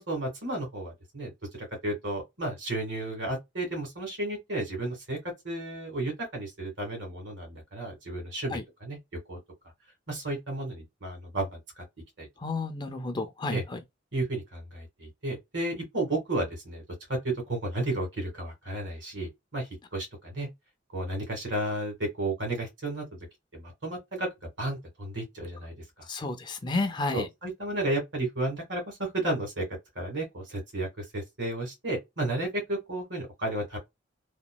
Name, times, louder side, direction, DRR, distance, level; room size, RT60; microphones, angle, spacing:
voice 1, 0.0-5.2 5.4-9.0 9.3-9.4 10.1-11.8 12.2-12.3 13.5-13.6 14.1-16.8 17.1-20.5 20.9-23.1 23.5-24.3 24.6-26.1 27.1-29.6 29.9-33.8, right 1 dB, 65° right, 1.6 m, -33 dB
voice 2, 12.4-13.8 26.1-27.3, left 2 dB, 25° left, 0.3 m, -31 dB
2.9 x 2.2 x 2.2 m
head